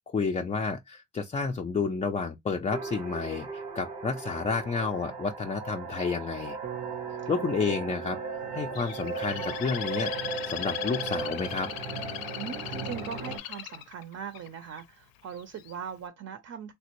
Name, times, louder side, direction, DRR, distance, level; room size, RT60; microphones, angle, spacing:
voice 1, 0.1-6.6 7.3-8.2 8.5-10.1 10.5-11.7, left 4 dB, 20° left, 0.3 m, -30 dB
sound 1, 2.7-13.4, right 4 dB, 90° right, 1.4 m, -37 dB
Bass guitar, 6.6-11.0, right 11 dB, 75° right, 0.9 m, -43 dB
Bird, 8.7-14.8 15.4-15.8, left 13 dB, 80° left, 0.5 m, -38 dB
voice 2, 12.3-16.7, right 7 dB, 45° right, 0.6 m, -40 dB
3.3 x 2.5 x 2.9 m
cardioid pair, 95°, 34 cm